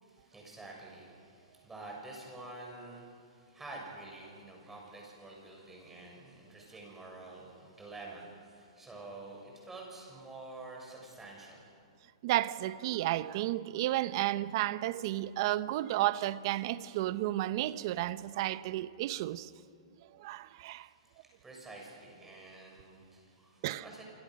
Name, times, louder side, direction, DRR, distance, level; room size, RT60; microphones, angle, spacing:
voice 1, 0.0-11.7 20.6-24.0, right 2 dB, 10° right, 6.8 m, -48 dB
voice 2, 12.2-19.5 20.2-20.9 23.6-23.8, right 15 dB, 45° right, 0.9 m, -32 dB
27.5 x 25.5 x 6.4 m
hypercardioid pair, 145°, 3 cm